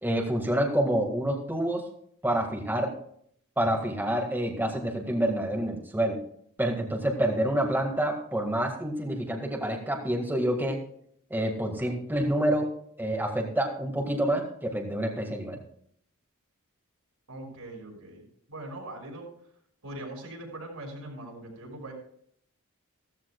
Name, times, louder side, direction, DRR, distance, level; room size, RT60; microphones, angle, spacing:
voice 1, 0.0-1.8 2.2-2.9 3.6-6.2 6.6-10.8 11.3-12.7 13.0-15.6, right 1 dB, 10° right, 0 dB, 1.9 m, -27 dB
voice 2, 17.3-18.2 18.5-19.3 19.8-21.9, right 1 dB, 80° right, 0 dB, 5.9 m, -41 dB
15.5 x 15.0 x 2.4 m, 0.64 s
head